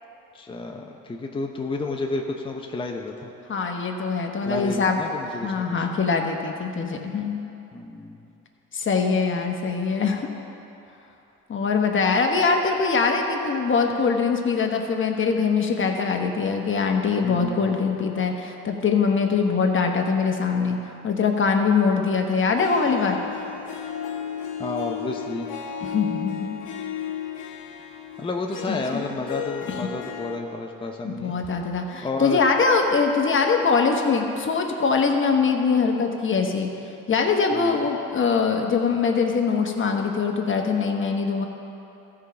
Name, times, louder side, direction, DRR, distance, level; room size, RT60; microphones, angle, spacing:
voice 1, 0.3-3.3 4.5-5.9 7.7-8.3 17.2-17.7 24.6-25.5 28.2-31.3 32.0-32.4 37.5-37.8, left 2 dB, 15° left, 1 dB, 0.7 m, -31 dB
voice 2, 3.5-5.0 5.4-7.4 8.7-10.3 11.5-23.2 25.8-26.6 28.7-29.0 31.0-36.7 37.1-41.5, left 5 dB, 40° left, 2 dB, 1.2 m, -23 dB
Harp, 22.5-30.4, left 9 dB, 65° left, 1.1 m, -34 dB
14.0 x 4.9 x 5.8 m, 2.9 s
supercardioid pair, 80°, 33 cm